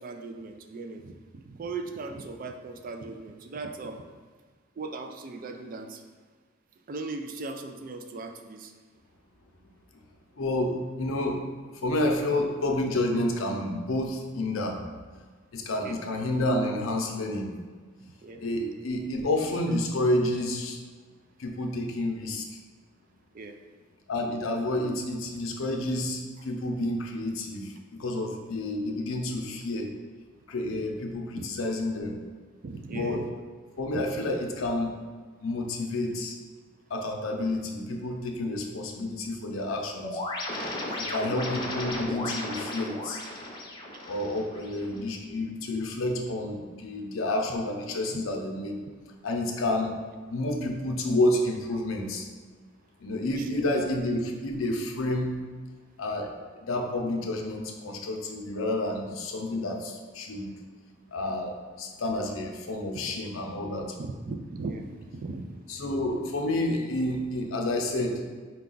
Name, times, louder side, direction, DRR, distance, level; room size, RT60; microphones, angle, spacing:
voice 1, 0.0-4.1 4.8-6.0 6.9-8.7 15.8-16.0 18.2-18.4 23.3-23.6 31.4-31.5 32.6-33.3 33.9-34.0 41.0-41.2 48.1-48.2 49.8-50.0 53.4-53.9 62.9-63.1 64.0-65.5, right 3 dB, 45° right, 5 dB, 0.4 m, -38 dB
voice 2, 10.4-11.4 11.7-14.8 15.5-17.5 18.4-20.8 21.4-22.6 24.1-29.9 30.5-32.1 32.9-33.2 33.8-34.9 35.4-36.4 36.9-40.2 41.0-43.2 44.0-48.8 49.2-49.9 50.3-52.2 53.0-55.4 56.0-60.5 61.1-64.0 65.7-68.2, left 1 dB, 80° left, 2 dB, 0.6 m, -29 dB
sound 1, 40.0-45.0, left 1 dB, 25° left, 0.6 m, -35 dB
4.7 x 2.2 x 3.8 m, 1.5 s
head